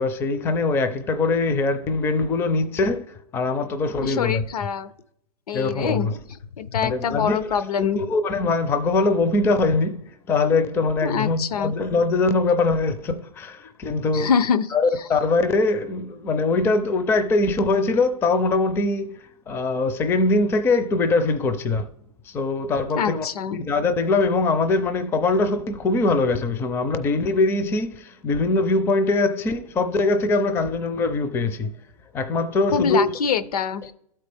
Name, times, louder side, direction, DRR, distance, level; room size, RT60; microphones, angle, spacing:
voice 1, 0.0-4.4 5.5-6.2 6.8-7.7 8.0-14.3 14.7-21.9 22.3-31.7 32.1-33.1 33.8-33.9, left 3 dB, 10° left, 0.4 m, -22 dB
voice 2, 4.0-4.9 5.5-6.1 6.6-8.0 11.0-11.7 14.1-14.7 23.0-23.6 32.7-33.8, left 7 dB, 75° left, 0.7 m, -24 dB
12.5 x 4.3 x 3.4 m
hypercardioid pair, 130°, 20 cm